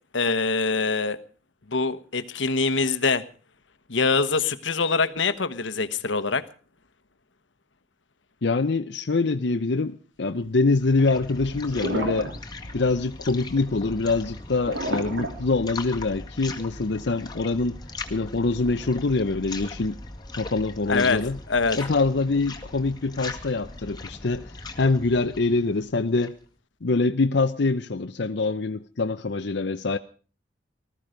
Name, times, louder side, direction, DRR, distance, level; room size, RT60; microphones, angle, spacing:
voice 1, 0.1-1.2 1.7-3.2 3.9-6.4 20.9-21.2 21.5-21.8, left 4 dB, 90° left, 1.2 m, -24 dB
voice 2, 8.4-12.3 12.7-17.8 18.1-20.0 20.4-21.4 21.7-24.5 24.8-26.4 26.8-30.0, left 3 dB, 65° left, 0.7 m, -24 dB
sound 1, 10.4-26.4, left 3 dB, 25° left, 2.0 m, -39 dB
sound 2, 11.7-12.4 12.6-12.9 14.7-16.0, right 1 dB, 75° right, 3.6 m, -30 dB
19.5 x 14.0 x 5.1 m
head